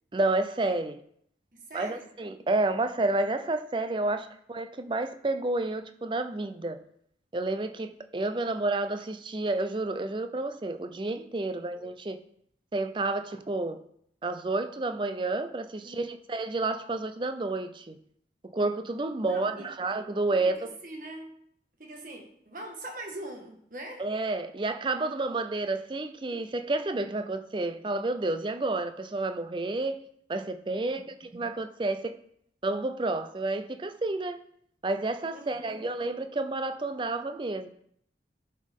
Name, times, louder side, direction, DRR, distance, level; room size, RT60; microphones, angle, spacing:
voice 1, 0.1-1.0 1.7-6.8 7.3-12.2 12.7-13.8 14.2-18.0 18.4-20.5 24.0-30.0 30.3-32.2 32.6-34.4 34.8-37.7, right 2 dB, 25° right, 0.5 m, -30 dB
voice 2, 1.5-2.1 4.1-4.2 15.8-16.1 19.2-19.7 20.3-21.3 21.8-24.0 30.7-31.1 35.3-35.8, right 1 dB, 50° right, 1.5 m, -42 dB
11.0 x 5.3 x 3.6 m
head